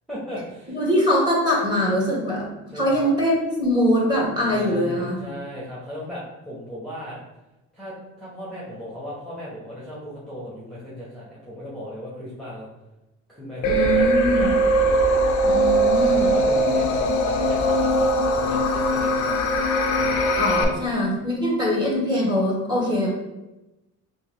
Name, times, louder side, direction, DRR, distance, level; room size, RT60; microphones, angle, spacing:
voice 1, 0.1-0.8 2.7-3.1 4.5-7.2 7.7-12.7 13.3-14.6 16.0-19.6 20.0-20.1 20.6-20.7, equal, ahead, -7 dB, 1.0 m, -36 dB
voice 2, 0.7-2.4 2.7-5.2 13.6-14.5 15.4-16.3 20.4-23.1, left 1 dB, 15° right, -4 dB, 1.5 m, -22 dB
sound 1, 13.6-20.6, right 1 dB, 90° left, 0.5 m, -20 dB
3.5 x 2.7 x 3.2 m, 0.98 s
cardioid pair, 90°, 30 cm